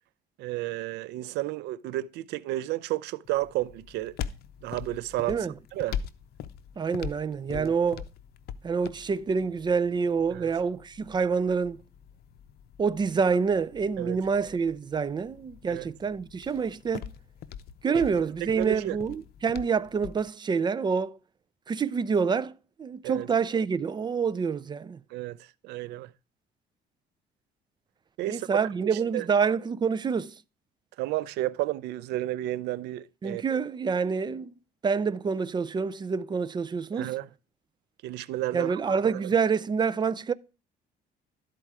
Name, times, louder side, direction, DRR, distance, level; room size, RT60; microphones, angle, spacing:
voice 1, 0.4-4.2 4.6-6.0 7.5-7.7 10.3-10.5 14.0-14.2 15.7-15.9 18.4-19.0 23.0-23.3 25.1-25.4 25.6-26.1 28.2-28.5 29.1-29.3 31.0-33.6 36.9-37.3 38.0-39.2, right 16 dB, 85° right, 0.5 m, -32 dB
sound 1, 3.2-20.3, left 8 dB, 70° left, 0.7 m, -43 dB
voice 2, 6.8-8.0 8.6-11.8 12.8-17.1 17.8-21.2 21.7-25.0 28.3-30.3 33.2-34.5 34.8-37.1 38.5-40.3, right 5 dB, 25° right, 0.5 m, -27 dB
12.5 x 4.5 x 4.7 m
cardioid pair, 110°, 17 cm